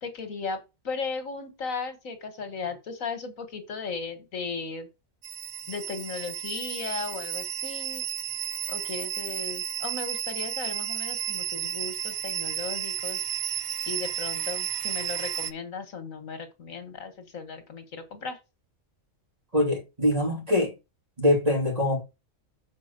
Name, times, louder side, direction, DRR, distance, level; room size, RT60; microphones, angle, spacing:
voice 1, 0.0-4.9 5.7-8.0 8.7-13.3 13.9-18.4, left 4 dB, 80° left, 2.0 m, -36 dB
sound 1, 5.2-15.5, right 10 dB, 60° right, 0.5 m, -32 dB
voice 2, 19.5-20.7 21.2-22.0, left 1 dB, 30° right, 2.9 m, -23 dB
7.1 x 4.4 x 6.7 m
omnidirectional pair, 1.4 m